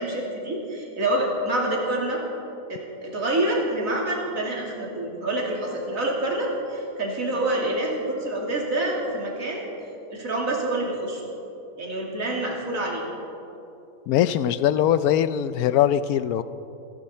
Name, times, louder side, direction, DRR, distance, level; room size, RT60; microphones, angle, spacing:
voice 1, 0.0-2.2 2.7-9.7 10.1-11.2 11.8-13.0, right 1 dB, 70° right, -2 dB, 3.2 m, -27 dB
voice 2, 14.1-16.4, left 10 dB, 85° left, 14 dB, 1.1 m, -21 dB
28.0 x 11.5 x 4.4 m, 2.8 s
omnidirectional pair, 1.5 m